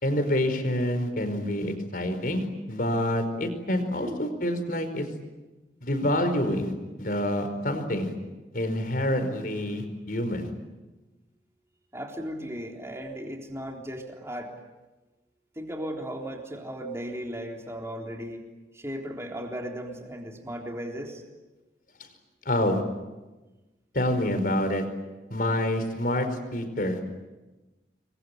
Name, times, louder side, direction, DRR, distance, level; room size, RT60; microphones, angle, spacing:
voice 1, 0.0-5.0 5.8-6.7 7.0-8.1 8.5-10.5 22.4-22.8 23.9-24.8 25.3-27.0, left 1 dB, 50° left, 8 dB, 4.8 m, -27 dB
voice 2, 11.9-14.6 15.6-18.4 18.7-21.2, equal, 15° right, 1 dB, 3.7 m, -36 dB
28.5 x 23.0 x 9.2 m, 1.2 s
head